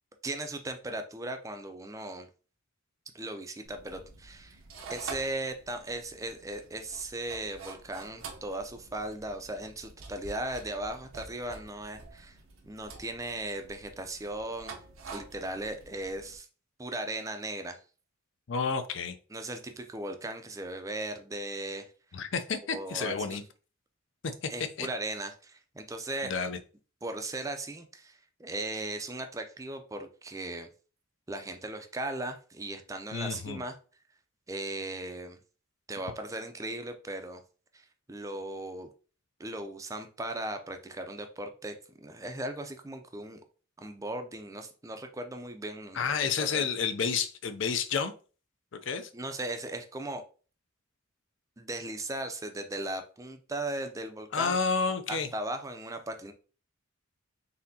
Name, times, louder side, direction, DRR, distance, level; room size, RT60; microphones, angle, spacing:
voice 1, 0.2-2.3 3.1-4.6 4.9-12.4 12.6-14.7 15.1-16.5 16.8-17.8 19.3-21.9 22.7-23.4 24.5-26.3 27.0-30.7 31.3-33.8 34.5-35.4 35.9-37.4 37.7-38.9 39.4-43.4 43.8-46.1 46.4-46.8 49.1-50.2 51.6-54.6 55.1-56.3, right 2 dB, 15° right, 6 dB, 0.4 m, -37 dB
sound 1, 3.6-16.4, right 4 dB, 80° right, 0.8 m, -48 dB
voice 2, 18.5-19.2 22.1-23.4 24.2-24.5 24.8-24.9 26.2-26.6 33.1-33.6 45.9-48.1 48.8-49.1 54.3-55.3, left 5 dB, 65° left, 9 dB, 0.5 m, -30 dB
4.2 x 3.6 x 2.7 m, 0.37 s
head